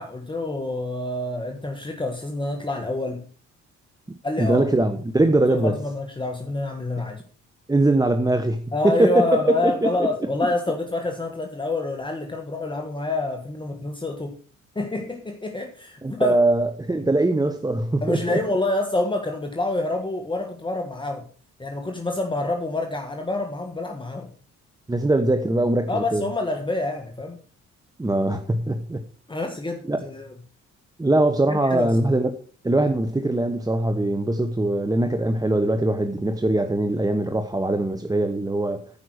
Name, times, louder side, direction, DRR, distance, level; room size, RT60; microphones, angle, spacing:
voice 1, 0.0-3.3 4.2-4.7 5.5-7.2 8.7-14.4 14.7-16.4 18.0-21.2 21.6-24.3 25.9-27.4 29.3-30.3 31.5-32.0, left 2 dB, 15° left, 1.6 m, -27 dB
voice 2, 4.4-5.8 7.7-9.2 9.6-9.9 16.0-18.4 24.9-26.3 28.0-29.0 29.9-30.0 31.0-32.3 32.6-38.8, right 2 dB, 10° right, 1.1 m, -22 dB
14.0 x 5.7 x 6.3 m
cardioid pair, 90°, 30 cm